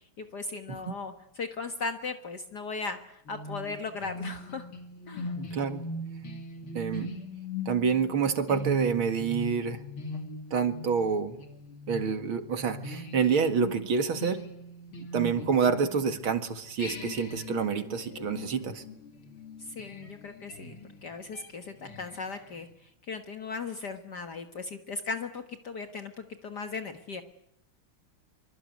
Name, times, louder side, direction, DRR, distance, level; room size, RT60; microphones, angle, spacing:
voice 1, 0.2-4.7 5.1-5.3 19.6-20.8 21.0-27.2, left 4 dB, 55° left, 7 dB, 2.0 m, -37 dB
sound 1, 3.3-16.3 16.8-22.7, left 1 dB, 75° left, 3.7 m, -40 dB
voice 2, 5.3-5.8 6.7-7.1 7.7-9.8 10.5-11.4 11.9-14.4 15.0-18.8, right 6 dB, 75° right, 9 dB, 2.7 m, -28 dB
25.5 x 25.0 x 9.4 m, 0.76 s
omnidirectional pair, 2.3 m